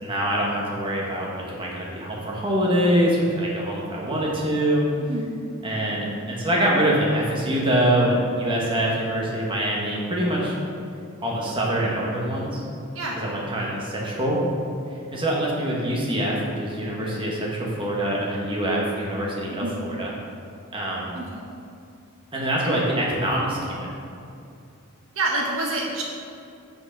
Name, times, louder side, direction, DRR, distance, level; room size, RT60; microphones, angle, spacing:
voice 1, 0.0-4.9 5.6-10.5 11.2-12.6 13.1-14.4 15.1-20.1 20.7-21.1 22.3-23.9, right 1 dB, 25° right, -4 dB, 1.4 m, -24 dB
voice 2, 21.1-21.5 22.6-22.7 25.2-26.0, right 2 dB, 65° right, -2 dB, 0.9 m, -27 dB
6.4 x 5.8 x 5.9 m, 2.5 s
head